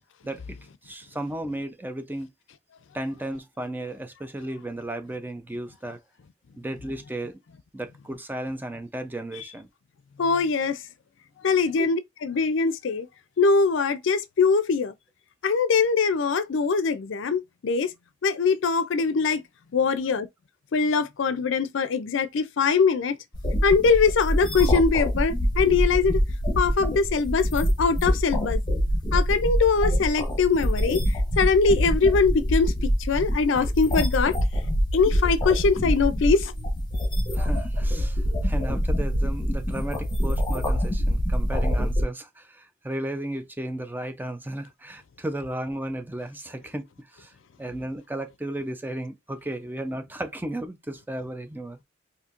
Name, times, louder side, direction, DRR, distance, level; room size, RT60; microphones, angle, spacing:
voice 1, 0.2-0.6 0.8-2.3 2.9-6.0 6.6-7.4 7.7-9.7 11.8-11.9 37.3-47.3 47.6-51.8, right 1 dB, 10° right, 0.5 m, -34 dB
voice 2, 10.2-10.8 11.4-13.1 13.4-14.9 15.4-17.9 18.2-19.4 19.7-20.3 20.7-23.2 23.6-26.2 26.6-28.6 29.1-34.4 34.9-36.5, left 5 dB, 70° left, 0.5 m, -22 dB
sound 1, 23.3-42.0, equal, 25° left, 1.0 m, -25 dB
4.3 x 2.7 x 2.5 m
head